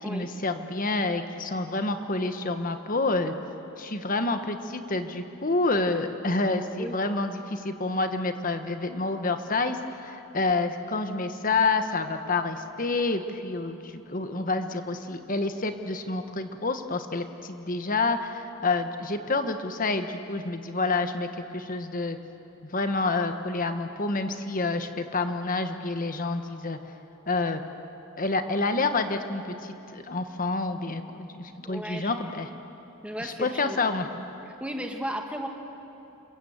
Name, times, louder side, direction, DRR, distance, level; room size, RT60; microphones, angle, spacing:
voice 1, 0.0-3.3 3.8-21.3 21.5-22.2 22.7-26.8 27.3-27.6 28.2-32.5 33.2-34.1, left 3 dB, 40° left, 8 dB, 1.2 m, -28 dB
voice 2, 31.6-32.1 33.0-34.0 34.5-35.5, equal, 5° right, 3 dB, 1.9 m, -35 dB
28.0 x 23.5 x 8.0 m, 3.0 s
head